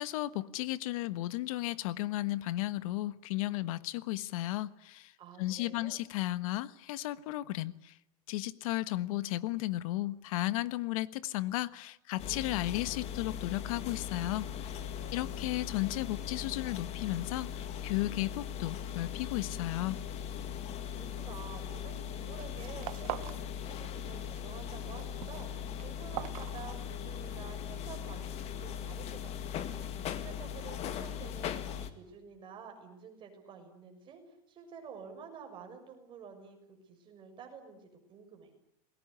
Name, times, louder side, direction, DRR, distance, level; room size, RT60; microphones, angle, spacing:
voice 1, 0.0-5.1 5.4-8.0 8.3-14.5 15.1-20.0, left 16 dB, 65° left, 15 dB, 1.4 m, -34 dB
voice 2, 5.2-6.0 15.1-15.7 21.0-38.5, right 6 dB, 25° right, 4 dB, 6.6 m, -50 dB
sound 1, 12.2-31.9, left 9 dB, 35° left, 2.2 m, -39 dB
sound 2, 21.7-22.0 22.3-23.5 23.8-24.4 24.7-27.2, right 18 dB, 70° right, 1.2 m, -43 dB
28.5 x 21.0 x 9.8 m, 0.79 s
supercardioid pair, 155°, 19 cm